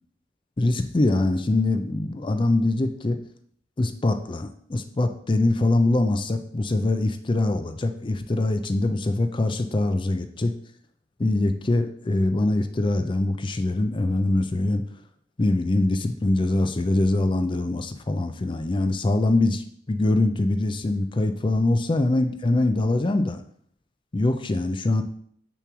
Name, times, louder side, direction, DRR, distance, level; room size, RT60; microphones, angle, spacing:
voice 1, 0.6-3.2 3.8-10.5 11.2-14.8 15.4-23.4 24.1-25.0, left 2 dB, 25° left, 8 dB, 0.4 m, -23 dB
6.8 x 3.1 x 6.0 m, 0.64 s
head